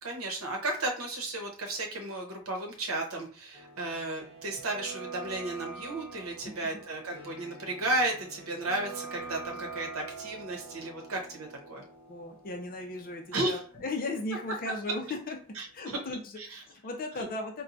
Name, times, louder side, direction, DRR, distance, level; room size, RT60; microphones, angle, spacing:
voice 1, 0.0-11.8 13.3-13.6 15.6-16.0 16.4-16.6, right 2 dB, 70° right, 1 dB, 0.9 m, -34 dB
sound 1, 3.5-15.3 15.5-15.6, right 4 dB, 25° right, 1.2 m, -46 dB
voice 2, 12.1-15.4 15.7-16.4 16.6-17.6, left 2 dB, 40° left, 2 dB, 0.5 m, -36 dB
4.3 x 2.2 x 2.6 m, 0.41 s
head